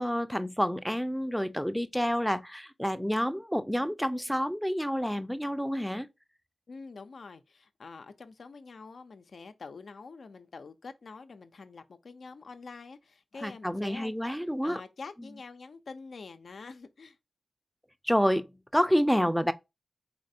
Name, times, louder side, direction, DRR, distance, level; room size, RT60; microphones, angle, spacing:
voice 1, 0.0-6.1 13.4-14.8 18.0-18.5 18.7-19.5, equal, ahead, 0.5 m, -28 dB
voice 2, 6.7-14.1 14.6-17.2, left 4 dB, 70° left, 0.5 m, -46 dB
4.3 x 3.2 x 2.7 m
cardioid pair, 40°, 0 cm